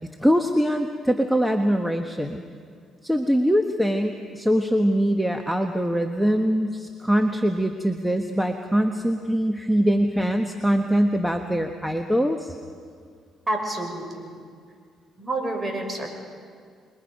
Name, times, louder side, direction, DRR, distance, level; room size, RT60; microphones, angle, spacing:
voice 1, 0.2-2.4 3.0-12.5, equal, ahead, 5 dB, 1.3 m, -23 dB
voice 2, 13.5-14.4 15.2-16.1, right 2 dB, 25° right, 3 dB, 5.7 m, -29 dB
27.5 x 22.0 x 5.3 m, 2.1 s
supercardioid pair, 70°, 0 cm